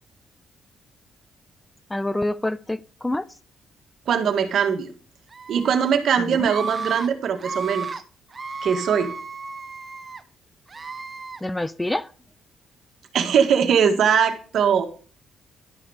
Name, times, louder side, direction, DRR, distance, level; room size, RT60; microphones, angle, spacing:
voice 1, 1.9-3.3 6.2-6.5 11.4-12.1, left 1 dB, 10° left, 0.4 m, -27 dB
voice 2, 4.1-4.9 5.5-7.9 8.6-9.1 13.1-14.9, right 7 dB, 65° right, 1.6 m, -21 dB
Screaming, 5.3-5.9 6.4-7.1 7.4-8.0 8.3-10.2 10.7-11.4, right 4 dB, 35° right, 0.9 m, -33 dB
12.0 x 5.9 x 4.9 m
cardioid pair, 90°, 0 cm